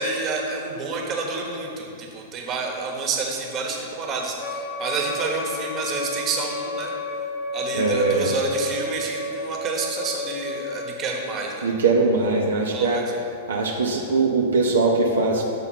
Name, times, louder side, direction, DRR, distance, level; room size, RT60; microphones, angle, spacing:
voice 1, 0.0-6.9 7.5-11.7 12.7-13.0, right 3 dB, 30° right, 1 dB, 1.1 m, -29 dB
Wind instrument woodwind instrument, 4.4-11.0, left 2 dB, 40° left, 0.9 m, -31 dB
voice 2, 7.7-8.3 11.6-13.0 13.5-15.4, right 3 dB, 65° right, 0 dB, 0.6 m, -21 dB
6.8 x 4.0 x 5.7 m, 2.7 s
figure-of-eight pair, 100°, 0 cm